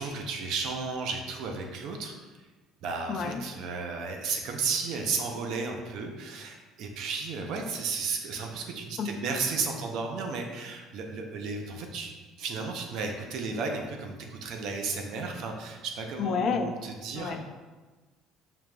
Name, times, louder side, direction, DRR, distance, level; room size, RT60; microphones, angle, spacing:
voice 1, 0.0-2.1 2.8-12.1 12.4-17.4, right 4 dB, 70° right, 3 dB, 0.5 m, -33 dB
voice 2, 3.1-3.4 9.0-9.2 16.2-16.7 17.1-17.4, left 5 dB, 50° left, 7 dB, 0.3 m, -29 dB
5.1 x 2.9 x 2.2 m, 1.3 s
cardioid pair, 105°, 0 cm